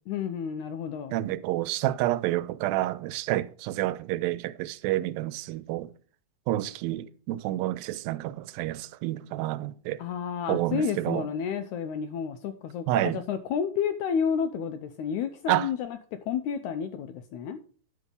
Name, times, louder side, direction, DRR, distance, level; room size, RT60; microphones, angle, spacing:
voice 1, 0.1-1.2 10.0-16.0 16.3-17.6, left 7 dB, 85° left, 1.7 m, -31 dB
voice 2, 1.1-5.9 6.5-10.0 10.5-11.3 12.9-13.2 15.5-15.7, right 15 dB, 90° right, 2.4 m, -29 dB
10.5 x 6.0 x 5.2 m
omnidirectional pair, 4.0 m